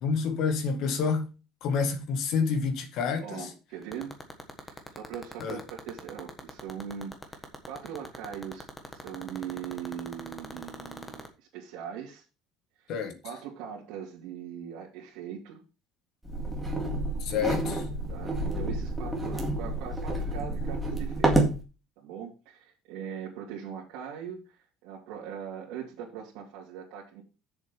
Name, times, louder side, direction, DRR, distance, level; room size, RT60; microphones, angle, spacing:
voice 1, 0.0-1.3 1.6-3.5 5.4-5.6 12.9-13.2 17.2-17.8, left 5 dB, 50° left, 1.8 m, -28 dB
voice 2, 3.2-4.2 4.6-12.2 12.8-12.9 13.2-15.6 18.1-21.3 22.0-27.2, right 8 dB, 75° right, 2.7 m, -41 dB
sound 1, 3.8-11.3, left 3 dB, 10° left, 1.4 m, -40 dB
sound 2, 16.3-21.6, right 2 dB, 5° right, 2.0 m, -29 dB
8.1 x 7.2 x 5.4 m
cardioid pair, 180°, 0 cm